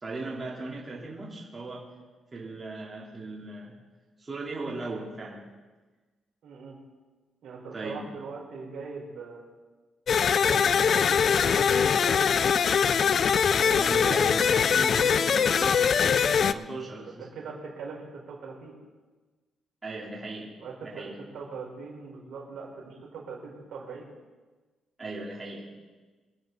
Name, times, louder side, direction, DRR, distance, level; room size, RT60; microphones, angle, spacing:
voice 1, 0.0-1.9 2.3-3.8 4.2-5.5 7.7-8.0 13.6-15.9 16.4-17.3 19.8-20.5 20.8-21.2 25.0-25.7, right 2 dB, 25° right, -4 dB, 3.4 m, -38 dB
voice 2, 6.4-6.8 7.4-9.4 10.3-13.1 13.4-14.5 15.0-15.7 17.2-18.7 20.6-24.1, right 5 dB, 70° right, -2 dB, 4.4 m, -41 dB
sound 1, 10.1-16.5, left 7 dB, 55° left, 0.4 m, -22 dB
24.5 x 9.2 x 4.0 m, 1.3 s
cardioid pair, 90°, 0 cm